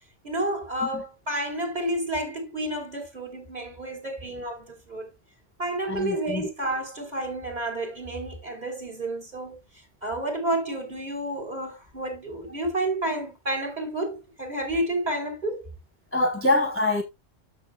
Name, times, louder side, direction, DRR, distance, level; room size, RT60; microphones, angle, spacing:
voice 1, 0.2-5.1 5.6-9.6 10.0-15.7, right 1 dB, 40° right, 3.5 m, -30 dB
voice 2, 5.9-6.5 16.1-17.0, left 2 dB, 10° left, 0.9 m, -24 dB
12.5 x 6.4 x 2.2 m
omnidirectional pair, 1.2 m